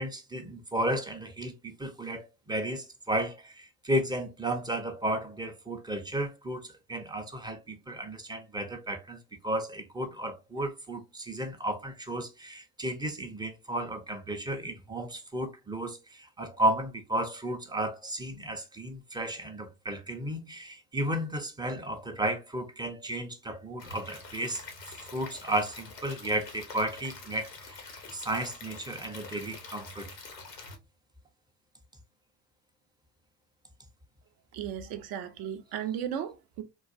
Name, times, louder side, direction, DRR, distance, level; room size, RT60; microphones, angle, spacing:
voice 1, 0.0-24.6 25.0-30.1, right 1 dB, 10° right, 0.5 m, -33 dB
Stream / Liquid, 23.8-30.8, left 3 dB, 90° left, 0.7 m, -46 dB
voice 2, 34.5-36.6, right 9 dB, 50° right, 0.7 m, -35 dB
3.8 x 2.3 x 2.5 m
figure-of-eight pair, 55°, 48 cm